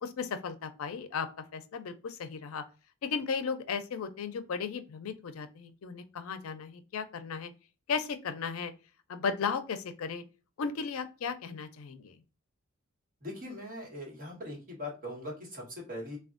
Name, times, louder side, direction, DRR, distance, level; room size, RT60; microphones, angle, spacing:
voice 1, 0.0-1.3 1.5-2.6 3.0-7.5 7.9-8.7 9.1-10.2 10.6-12.1, left 5 dB, 75° left, 10 dB, 0.4 m, -35 dB
voice 2, 13.2-16.2, left 1 dB, 40° right, -2 dB, 1.2 m, -41 dB
3.4 x 2.2 x 2.5 m, 0.33 s
head